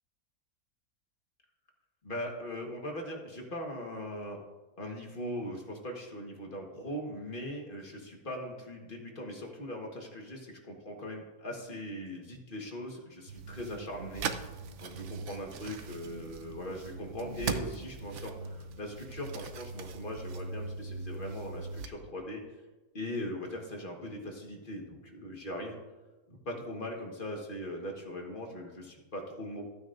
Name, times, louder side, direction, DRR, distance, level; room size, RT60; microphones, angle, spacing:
voice 1, 2.0-4.4 4.8-14.3 14.8-22.4 22.9-25.8 26.3-29.6, left 1 dB, 35° left, 1 dB, 1.5 m, -40 dB
sound 1, 13.3-21.9, right 5 dB, 60° right, 0.9 m, -40 dB
14.5 x 9.3 x 2.5 m, 1.2 s
omnidirectional pair, 1.6 m